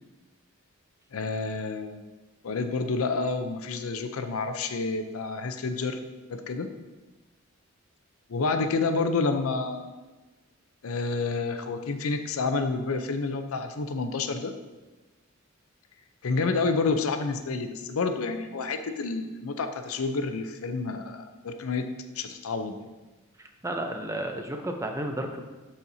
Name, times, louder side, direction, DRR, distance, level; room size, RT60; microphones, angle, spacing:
voice 1, 1.1-2.0 2.4-6.0 6.3-6.7 8.3-9.9 10.8-14.6 16.2-22.9, left 4 dB, 75° left, 8 dB, 0.5 m, -29 dB
voice 2, 23.4-25.4, right 1 dB, 15° right, 4 dB, 0.6 m, -32 dB
12.0 x 4.3 x 2.7 m, 1.2 s
head